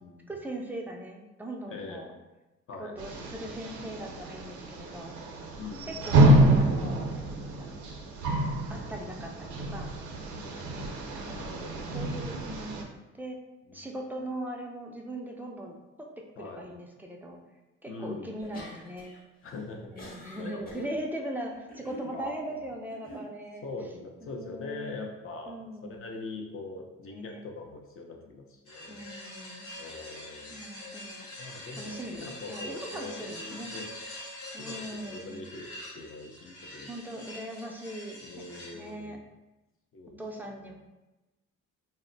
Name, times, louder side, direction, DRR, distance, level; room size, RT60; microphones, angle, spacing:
voice 1, 0.3-2.1 2.8-5.1 5.9-7.1 7.4-7.8 8.7-9.9 10.7-11.4 11.9-12.9 13.1-13.4 13.7-17.4 17.8-19.1 19.8-23.7 24.2-25.1 25.5-26.0 27.1-27.4 28.9-29.7 30.5-31.3 31.8-33.7 34.5-35.4 36.9-38.2 38.7-39.2 40.2-40.8, right 1 dB, 5° right, 0 dB, 0.3 m, -40 dB
voice 2, 1.7-2.1 2.7-3.0 5.6-6.0 10.3-10.7 11.3-12.0 13.8-13.9 16.4-16.6 17.9-18.3 19.4-21.0 22.1-22.7 23.6-29.0 29.8-30.8 31.4-33.8 34.6-35.7 35.9-36.9 38.2-39.2 39.9-40.2 40.6-40.7, left 3 dB, 45° left, 2 dB, 0.6 m, -42 dB
sound 1, 3.0-12.8, right 1 dB, 75° right, 0.5 m, -27 dB
sound 2, 18.4-19.2 19.5-20.9 21.5-22.2 22.9-23.3, left 1 dB, 30° left, 0.9 m, -45 dB
sound 3, 28.7-38.9, left 1 dB, 70° left, 0.9 m, -44 dB
2.1 x 2.0 x 3.8 m, 1.1 s
cardioid pair, 90°, 30 cm